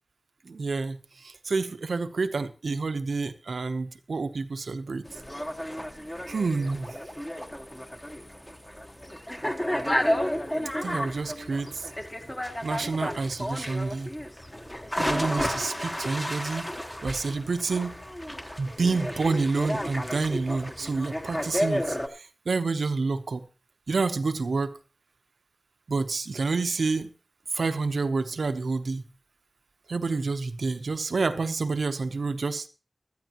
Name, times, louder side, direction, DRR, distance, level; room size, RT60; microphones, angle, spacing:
voice 1, 0.4-5.1 6.3-7.0 10.8-11.9 12.6-14.1 15.0-16.7 17.0-18.0 18.6-23.5 23.9-24.8 25.9-27.1 27.5-29.0 29.9-32.7, right 4 dB, 85° right, 0.9 m, -28 dB
sound 1, 5.0-22.1, equal, 15° left, 1.3 m, -32 dB
15.5 x 12.5 x 3.0 m
wide cardioid pair, 55°, 0 cm